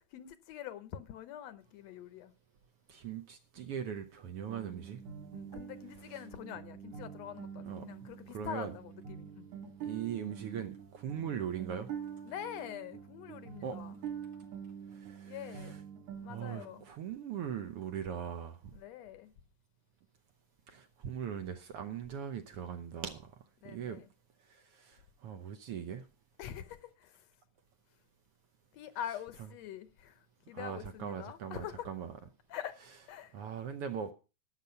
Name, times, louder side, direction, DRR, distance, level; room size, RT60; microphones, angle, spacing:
voice 1, 0.0-2.3 5.3-9.5 12.3-13.9 15.3-15.8 16.2-16.8 18.7-19.3 23.6-24.1 26.4-27.3 28.7-31.9 32.5-32.7 33.1-33.4, left 10 dB, 70° left, 1.9 m, -45 dB
voice 2, 2.9-5.0 7.7-7.9 8.3-8.7 9.8-11.9 13.6-13.8 14.9-15.8 16.3-18.7 20.7-23.3 23.6-24.0 24.5-26.1 30.5-32.1 33.3-34.1, right 8 dB, 65° right, 1.6 m, -40 dB
sound 1, 4.5-16.9, right 8 dB, 90° right, 3.1 m, -46 dB
12.5 x 8.2 x 5.6 m
omnidirectional pair, 3.3 m